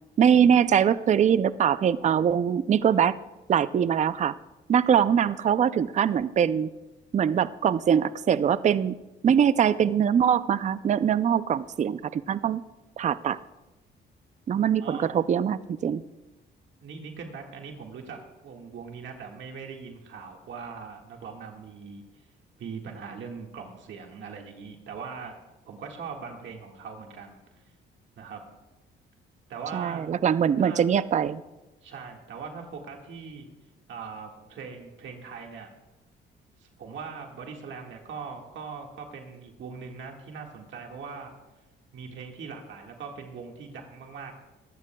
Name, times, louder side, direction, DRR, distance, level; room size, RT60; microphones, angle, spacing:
voice 1, 0.2-3.2 3.5-4.3 4.7-6.7 7.1-9.0 9.2-12.6 13.0-13.4 14.5-16.0 29.7-31.4, right 8 dB, 35° right, 15 dB, 0.4 m, -22 dB
voice 2, 14.8-15.2 16.8-22.0 22.6-25.3 25.7-27.6 28.2-28.4 29.5-30.0 30.6-30.8 31.8-33.5 33.9-35.7 36.6-41.3 41.9-44.3, right 5 dB, 70° right, 2 dB, 1.8 m, -40 dB
23.0 x 13.5 x 2.3 m, 1.0 s
cardioid pair, 90°, 20 cm